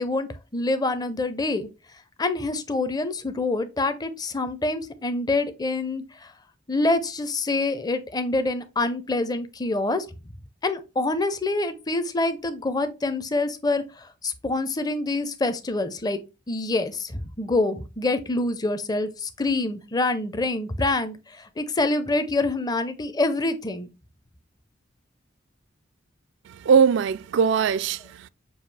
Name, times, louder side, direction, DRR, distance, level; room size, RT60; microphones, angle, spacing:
voice 1, 0.0-1.7 2.2-6.3 6.7-10.1 10.6-16.2 16.5-23.9, left 2 dB, 20° left, 0.5 m, -26 dB
voice 2, 26.5-28.3, right 6 dB, 65° right, 0.3 m, -21 dB
6.9 x 2.3 x 3.3 m
head